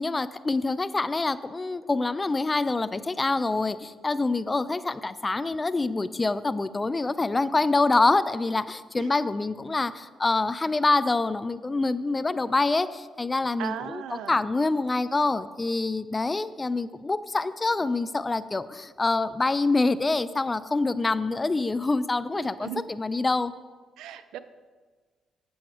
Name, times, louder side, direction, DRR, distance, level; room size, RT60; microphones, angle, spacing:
voice 1, 0.0-23.5, left 3 dB, 25° left, 14 dB, 0.4 m, -26 dB
voice 2, 13.6-14.4 22.3-22.9 24.0-24.4, right 10 dB, 85° right, 12 dB, 0.4 m, -37 dB
7.8 x 7.4 x 4.6 m, 1.5 s
cardioid pair, 90°, 0 cm